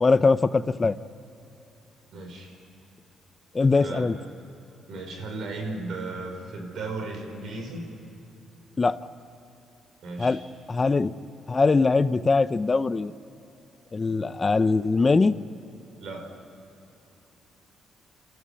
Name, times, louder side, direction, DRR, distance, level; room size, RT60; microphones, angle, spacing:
voice 1, 0.0-1.0 3.5-4.1 8.8-9.0 10.2-10.4 10.7-11.1 11.5-13.1 13.9-15.3, left 3 dB, 30° left, 14 dB, 0.8 m, -21 dB
voice 2, 2.1-2.6 3.7-4.3 4.9-7.8 10.0-10.4 16.0-16.3, right 3 dB, 70° right, 3 dB, 5.4 m, -35 dB
28.0 x 14.0 x 9.9 m, 3.0 s
cardioid pair, 90°, 0 cm